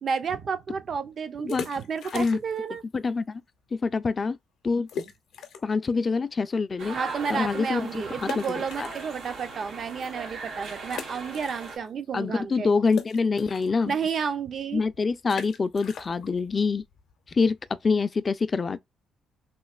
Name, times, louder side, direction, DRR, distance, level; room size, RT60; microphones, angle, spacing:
voice 1, 0.0-2.8 6.9-12.7 13.9-14.8, right 6 dB, 50° right, 0.5 m, -31 dB
sound 1, 1.4-2.7 3.0-3.1 3.7-3.8 4.1-4.2 4.9-5.8 6.3-6.4 8.2-9.5 10.0-10.1 10.9-12.1 12.3-17.8, left 7 dB, 75° left, 0.6 m, -41 dB
voice 2, 2.9-3.4 3.7-4.4 4.6-4.9 5.6-7.0 7.3-8.9 12.1-13.9 14.7-16.8 17.3-17.6 17.8-18.8, left 4 dB, 35° left, 0.3 m, -25 dB
sound 2, 6.8-11.8, right 3 dB, 85° right, 1.1 m, -39 dB
3.0 x 2.8 x 2.4 m
cardioid pair, 90°, 0 cm